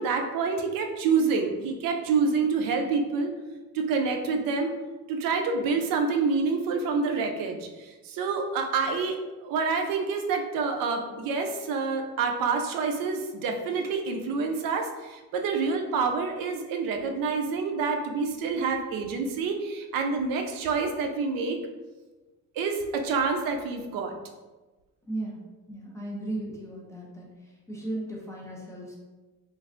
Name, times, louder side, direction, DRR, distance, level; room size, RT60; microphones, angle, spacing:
voice 1, 0.0-3.3 3.7-4.7 5.1-9.2 9.4-21.6 22.6-24.1, right 4 dB, 75° right, 4 dB, 0.5 m, -27 dB
voice 2, 25.1-25.4 25.7-27.3 27.7-29.0, right 1 dB, 10° left, -5 dB, 0.4 m, -35 dB
3.2 x 2.4 x 2.4 m, 1.2 s
cardioid pair, 170°, 34 cm